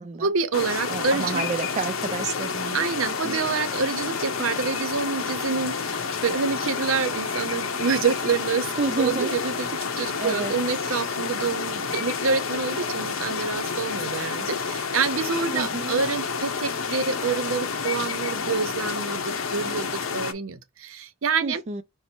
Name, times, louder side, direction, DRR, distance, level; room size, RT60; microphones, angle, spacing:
voice 1, 0.2-1.5 2.7-21.6, right 5 dB, 75° right, 0.6 m, -27 dB
sound 1, 0.5-20.3, left 5 dB, 80° left, 0.7 m, -29 dB
voice 2, 0.9-3.4 8.8-9.3 10.2-10.5 15.5-16.0 21.4-21.8, right 4 dB, 35° right, 0.4 m, -30 dB
5.4 x 2.0 x 4.4 m
head